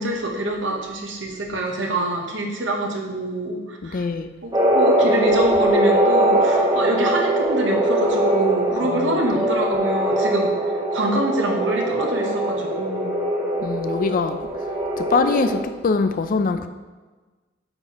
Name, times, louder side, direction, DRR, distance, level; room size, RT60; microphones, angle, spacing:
voice 1, 0.0-4.0 4.4-10.5 10.9-13.2, right 1 dB, 70° right, 1 dB, 1.0 m, -26 dB
voice 2, 3.8-4.3 8.8-9.5 13.6-14.4 15.0-16.7, left 4 dB, 45° left, 9 dB, 0.4 m, -23 dB
sound 1, 4.5-15.6, right 1 dB, 20° right, 0.8 m, -21 dB
8.7 x 4.1 x 3.0 m, 1.3 s
head